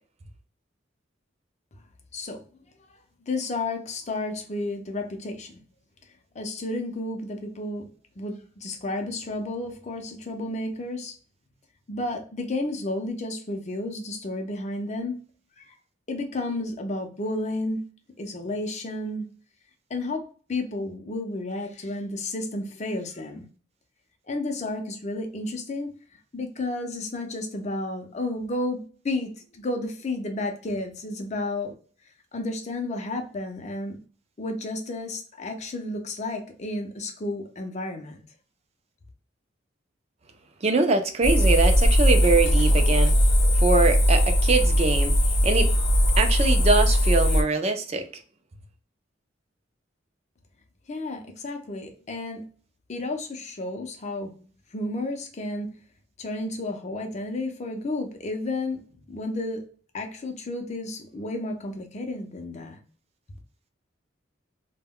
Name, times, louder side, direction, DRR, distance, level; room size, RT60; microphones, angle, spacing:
voice 1, 3.3-5.6 6.3-7.9 8.2-11.1 11.9-15.2 15.6-15.7 16.1-17.8 18.2-19.2 19.9-20.2 20.5-23.4 24.3-25.9 26.3-31.7 32.3-34.0 34.4-38.2 50.9-52.4 52.9-55.7 56.2-58.8 59.1-59.6 59.9-62.8, left 2 dB, 40° left, 0.6 m, -32 dB
voice 2, 40.6-43.2 43.6-45.1 45.4-45.7 46.2-48.0, right 3 dB, 35° right, 0.4 m, -23 dB
sound 1, 41.2-47.4, equal, 75° left, 0.7 m, -19 dB
2.2 x 2.2 x 3.5 m
head